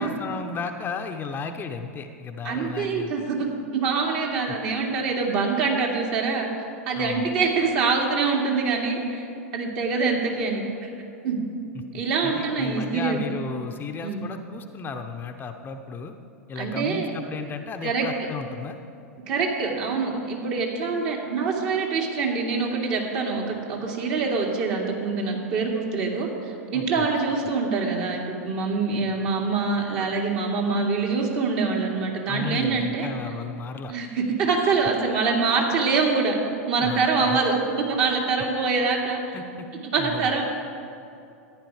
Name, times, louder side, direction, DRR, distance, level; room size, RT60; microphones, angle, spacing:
voice 1, 0.0-3.1 4.5-4.6 6.9-7.3 11.7-16.1 16.5-18.8 26.7-27.1 27.5-27.6 32.3-33.9 36.8-37.4 39.3-39.7 40.0-40.4, left 5 dB, 25° left, 6 dB, 0.8 m, -34 dB
voice 2, 2.4-3.5 3.7-6.5 6.9-9.3 9.5-10.9 11.2-11.4 11.9-13.2 14.0-14.2 16.6-17.1 17.8-18.1 19.3-26.3 26.7-33.1 33.9-36.3 36.7-37.6 37.9-39.4 39.9-40.4, right 4 dB, 50° right, -1 dB, 2.6 m, -25 dB
14.5 x 9.9 x 4.9 m, 2.6 s
hypercardioid pair, 100°, 8 cm